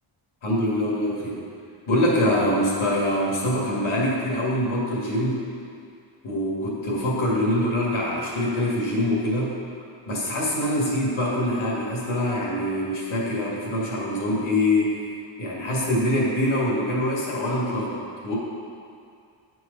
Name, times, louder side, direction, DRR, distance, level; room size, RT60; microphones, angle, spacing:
voice 1, 0.4-1.4 1.9-5.4 6.2-9.5 10.1-15.0 15.4-18.4, left 1 dB, 70° left, -4 dB, 2.0 m, -24 dB
9.1 x 4.8 x 5.3 m, 2.4 s
wide cardioid pair, 150°, 50 cm